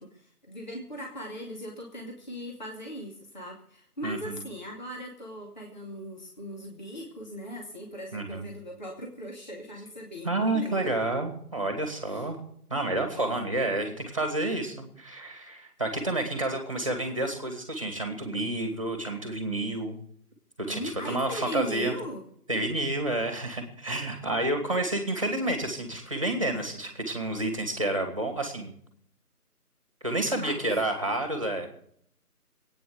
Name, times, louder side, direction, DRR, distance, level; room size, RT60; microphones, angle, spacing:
voice 1, 0.0-10.9 12.0-12.3 13.1-13.3 20.7-22.2 30.4-30.7, equal, 30° left, -1 dB, 2.4 m, -39 dB
voice 2, 4.0-4.4 8.1-8.5 10.2-12.4 12.7-20.0 20.7-21.9 22.5-28.7 30.0-31.7, right 2 dB, 20° right, 5 dB, 2.4 m, -29 dB
20.0 x 9.4 x 6.7 m, 0.66 s
figure-of-eight pair, 175°, 46 cm